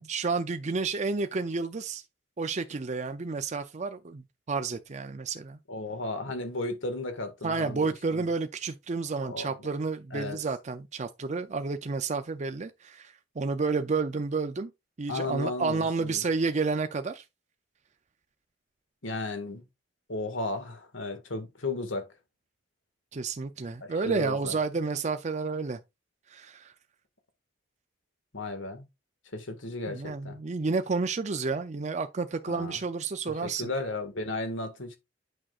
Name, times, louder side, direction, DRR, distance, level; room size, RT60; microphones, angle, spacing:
voice 1, 0.0-2.0 2.4-5.6 7.4-14.7 15.0-17.2 23.1-25.8 26.3-26.7 29.9-33.7, right 4 dB, 35° right, 0.5 m, -30 dB
voice 2, 5.7-8.3 9.2-9.7 10.1-10.4 15.1-16.2 19.0-19.6 20.1-22.1 23.8-24.6 28.3-28.9 29.3-30.4 32.5-32.8 33.3-35.0, left 2 dB, 75° left, 1.9 m, -35 dB
8.7 x 6.1 x 2.4 m
head